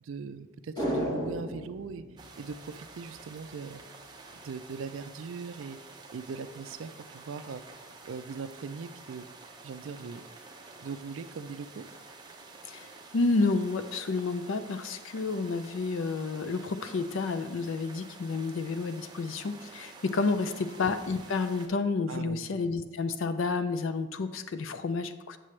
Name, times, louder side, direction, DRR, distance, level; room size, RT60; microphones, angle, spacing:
voice 1, 0.0-2.0 2.4-3.8 4.4-5.8 6.1-7.6 8.0-9.2 9.6-10.2 10.8-11.8 20.5-20.7 22.1-22.5, right 5 dB, 65° right, 12 dB, 0.4 m, -40 dB
sound 1, 0.8-3.2 3.5-3.6, equal, 20° left, 1.0 m, -34 dB
sound 2, 2.2-21.7, right 3 dB, 20° right, 0.7 m, -50 dB
voice 2, 13.1-25.4, left 3 dB, 60° left, 10 dB, 0.4 m, -30 dB
sound 3, 16.8-17.2 18.3-18.7 20.3-21.0, left 1 dB, 90° left, 2.0 m, -53 dB
7.5 x 6.8 x 3.2 m, 1.1 s
head